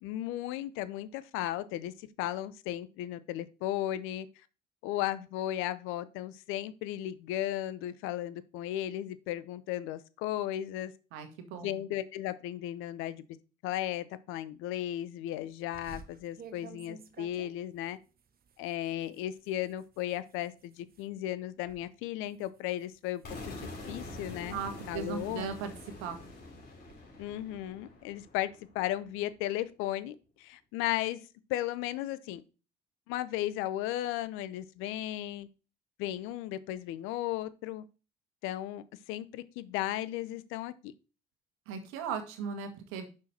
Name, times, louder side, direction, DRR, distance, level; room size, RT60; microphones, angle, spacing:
voice 1, 0.0-4.3 4.8-10.9 11.5-13.2 13.6-18.0 18.6-24.6 24.9-25.5 27.2-31.2 31.5-32.4 33.1-35.5 36.0-37.8 38.4-40.9, left 13 dB, 75° left, 0.7 m, -35 dB
voice 2, 11.1-11.8 24.5-25.7 26.0-26.2 41.7-43.1, right 6 dB, 75° right, 1.5 m, -37 dB
sound 1, 15.7-21.1 21.5-21.9 22.3-24.3 24.8-27.0, right 5 dB, 45° right, 0.9 m, -54 dB
sound 2, 23.2-29.1, left 2 dB, 50° left, 3.4 m, -46 dB
6.2 x 5.8 x 4.3 m
hypercardioid pair, 60°, 21 cm